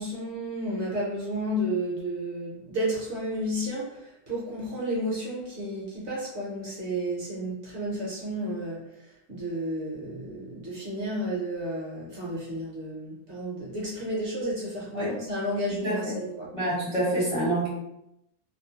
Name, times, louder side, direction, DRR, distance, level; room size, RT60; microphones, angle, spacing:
voice 1, 0.0-16.5, equal, 55° right, -5 dB, 0.9 m, -32 dB
voice 2, 15.8-16.1 16.5-17.7, right 1 dB, 35° left, -9 dB, 0.5 m, -27 dB
2.8 x 2.0 x 2.8 m, 0.84 s
omnidirectional pair, 1.6 m